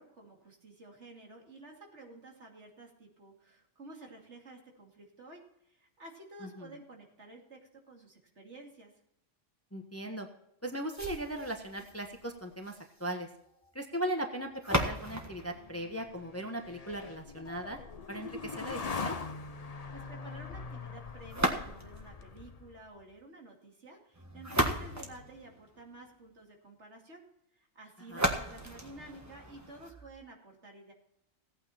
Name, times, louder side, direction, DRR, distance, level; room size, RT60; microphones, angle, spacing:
voice 1, 0.0-8.9 19.6-27.2 27.5-30.9, right 2 dB, 65° right, 0 dB, 2.9 m, -52 dB
voice 2, 9.7-10.3 10.6-13.3 13.7-17.8 18.1-19.2 28.1-28.3, right 1 dB, 10° left, 4 dB, 1.2 m, -38 dB
sound 1, 10.9-16.9 21.3-22.1 24.1-26.1 28.1-30.1, equal, 15° right, 1.6 m, -36 dB
sound 2, 15.5-22.9, left 4 dB, 35° left, 0.8 m, -42 dB
17.0 x 8.9 x 4.3 m, 0.78 s
omnidirectional pair, 1.3 m